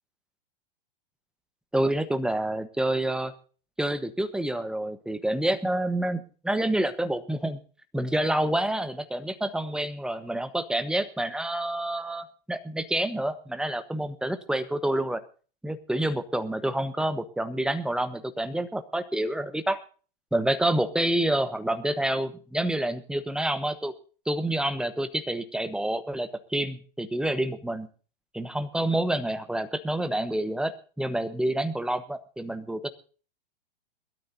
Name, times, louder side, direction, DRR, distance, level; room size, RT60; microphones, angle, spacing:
voice 1, 1.7-3.3 3.8-7.6 7.9-15.2 15.6-19.8 20.3-23.9 24.3-27.9 28.3-32.9, right 1 dB, 5° right, 11 dB, 1.1 m, -28 dB
22.0 x 13.0 x 2.7 m, 0.39 s
hypercardioid pair, 120°, 30 cm